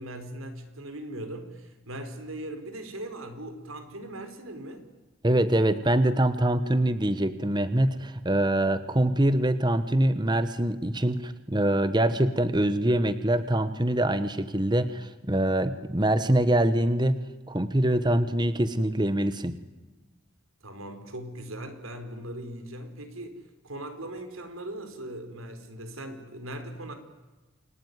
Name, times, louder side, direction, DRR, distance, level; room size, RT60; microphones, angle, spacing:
voice 1, 0.0-4.9 20.6-27.0, right 1 dB, 90° right, 8 dB, 4.4 m, -39 dB
voice 2, 5.2-17.2 17.5-19.6, right 1 dB, 20° right, 12 dB, 1.1 m, -24 dB
29.0 x 21.5 x 9.5 m, 1.1 s
head